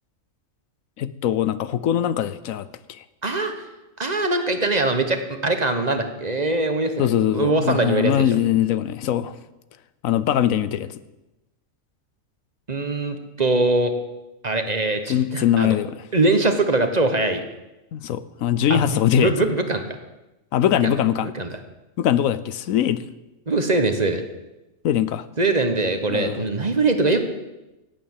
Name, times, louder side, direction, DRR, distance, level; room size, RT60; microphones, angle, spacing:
voice 1, 1.0-2.7 7.0-9.3 10.0-10.9 15.1-16.0 17.9-19.3 20.5-21.3 22.0-23.0 24.8-25.2 26.1-26.4, left 10 dB, 90° left, 15 dB, 1.1 m, -21 dB
voice 2, 3.2-3.7 4.0-8.4 12.7-13.9 14.4-15.8 16.1-17.4 18.7-19.8 20.8-21.0 21.3-21.5 23.5-24.2 25.4-27.2, right 2 dB, 35° right, 7 dB, 1.3 m, -22 dB
16.0 x 8.7 x 7.3 m, 1.0 s
omnidirectional pair, 1.4 m